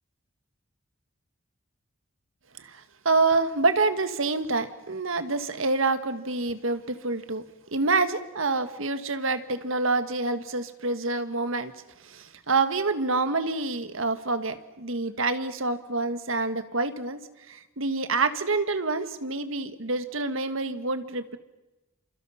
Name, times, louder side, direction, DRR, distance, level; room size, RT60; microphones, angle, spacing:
voice 1, 2.6-7.4 7.7-11.7 12.0-17.2 17.5-21.4, right 3 dB, 70° right, 10 dB, 1.5 m, -27 dB
28.0 x 27.5 x 5.7 m, 1.0 s
head